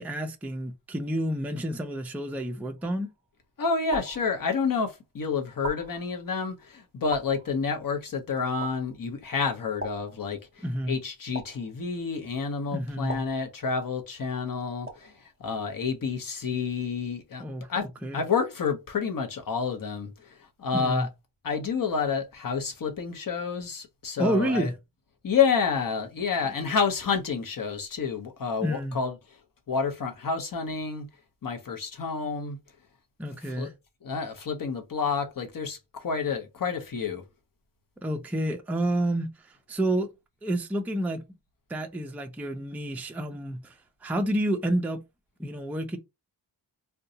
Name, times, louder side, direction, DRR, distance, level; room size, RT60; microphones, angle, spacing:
voice 1, 0.0-3.1 10.6-11.0 12.7-13.2 17.4-17.7 18.0-18.2 20.7-21.1 24.2-24.8 28.6-29.0 33.2-33.7 38.0-40.1 40.4-41.2 41.7-45.0 45.4-46.0, right 1 dB, 5° right, 0.3 m, -29 dB
sound 1, 2.8-3.3 3.9-4.9 5.6-6.5 7.1-8.0 8.6-9.3 9.8-10.7 11.3-12.2 13.1-14.1 14.9-15.5, right 3 dB, 30° right, 0.7 m, -41 dB
voice 2, 3.6-15.1 15.4-17.4 17.7-17.9 18.1-20.3 20.6-21.1 21.4-24.7 25.2-29.2 29.7-31.1 31.4-32.6 33.4-33.7 34.0-37.2, left 5 dB, 50° left, 0.7 m, -29 dB
3.9 x 2.2 x 2.6 m
wide cardioid pair, 135°, 44 cm